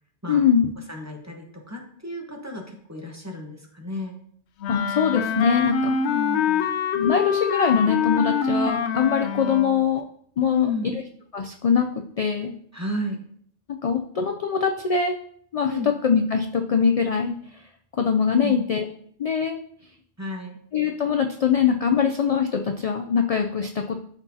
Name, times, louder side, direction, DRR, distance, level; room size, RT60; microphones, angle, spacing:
voice 1, 0.3-0.7 4.7-6.0 6.9-10.0 10.4-11.0 11.3-11.9 12.2-12.5 13.8-15.1 15.5-17.3 18.0-18.9 19.2-19.6 20.7-24.0, left 6 dB, 50° left, 4 dB, 0.4 m, -22 dB
voice 2, 0.9-4.1 6.1-6.6 10.5-10.9 12.7-13.2 15.6-15.9 18.4-18.6 20.2-20.6, left 1 dB, 15° right, 1 dB, 1.0 m, -32 dB
Wind instrument woodwind instrument, 4.6-9.9, left 6 dB, 80° left, 0.9 m, -25 dB
12.0 x 4.5 x 2.8 m, 0.63 s
omnidirectional pair, 1.1 m